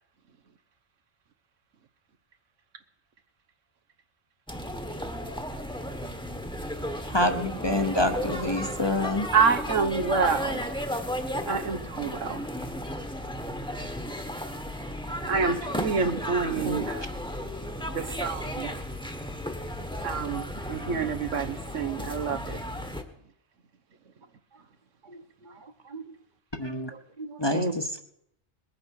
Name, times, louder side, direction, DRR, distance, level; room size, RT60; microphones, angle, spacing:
sound 1, 4.5-23.0, equal, 5° left, 1.3 m, -34 dB
voice 1, 6.8-9.3 26.6-26.9 27.4-28.0, left 1 dB, 20° left, 6 dB, 1.1 m, -27 dB
voice 2, 9.3-10.7 11.5-12.4 15.3-17.1 17.9-18.7 20.0-22.6, right 5 dB, 85° right, 9 dB, 1.4 m, -27 dB
voice 3, 20.8-21.2 25.0-26.1 26.9-27.7, right 1 dB, 40° right, 9 dB, 1.4 m, -36 dB
20.5 x 8.8 x 6.4 m, 0.73 s
omnidirectional pair, 1.3 m